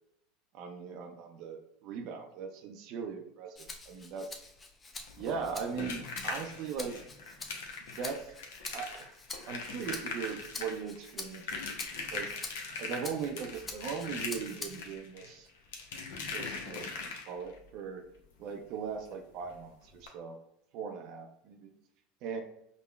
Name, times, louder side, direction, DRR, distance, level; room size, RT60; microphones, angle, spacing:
voice 1, 0.5-4.4 5.2-6.9 8.0-8.3 8.7-9.1 9.5-12.3 12.8-15.5 16.2-18.0 18.4-20.4 20.7-21.7 22.2-22.4, right 6 dB, 55° right, 4 dB, 0.4 m, -39 dB
Rattle (instrument), 3.6-15.0 15.5-16.6, left 3 dB, 25° left, 0.5 m, -47 dB
sound 1, 5.1-17.6 19.0-19.1 19.4-19.6 20.0-20.1, left 4 dB, 75° left, 0.6 m, -41 dB
5.1 x 2.1 x 2.2 m, 0.79 s
hypercardioid pair, 90°, 0 cm